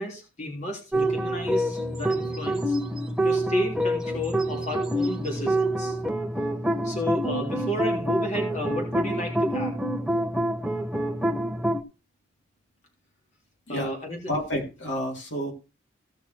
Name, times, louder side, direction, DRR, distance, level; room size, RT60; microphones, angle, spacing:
voice 1, 0.0-2.8 3.2-6.0 6.8-9.7 13.7-14.3, left 1 dB, 35° left, 0 dB, 3.5 m, -31 dB
sound 1, 0.9-11.8, right 1 dB, 5° right, 0.9 m, -27 dB
voice 2, 14.3-15.5, equal, 70° left, 0 dB, 3.4 m, -29 dB
16.5 x 5.8 x 4.6 m, 0.30 s
head